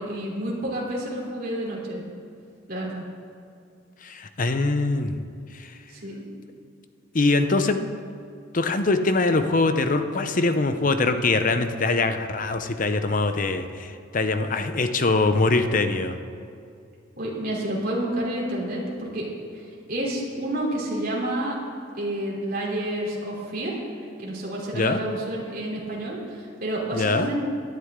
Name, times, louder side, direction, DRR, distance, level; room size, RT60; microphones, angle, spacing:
voice 1, 0.0-2.0 2.7-3.1 5.9-6.2 17.2-19.3 19.5-19.6 19.9-21.5 22.0-27.4, right 1 dB, 50° right, -4 dB, 3.2 m, -29 dB
voice 2, 4.0-5.2 7.1-7.8 8.5-16.2 24.7-25.0 26.9-27.3, left 3 dB, 45° left, 8 dB, 0.7 m, -23 dB
17.5 x 11.5 x 3.7 m, 2.5 s
head